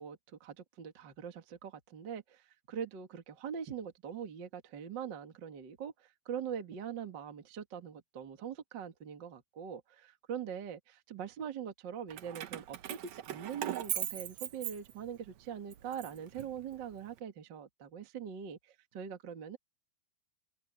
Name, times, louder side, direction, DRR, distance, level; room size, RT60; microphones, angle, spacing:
voice 1, 0.0-19.6, right 8 dB, 45° right, 1.4 m, -42 dB
Keys jangling, 12.1-15.3 15.7-17.0, right 12 dB, 80° right, 1.5 m, -40 dB
omnidirectional pair, 4.7 m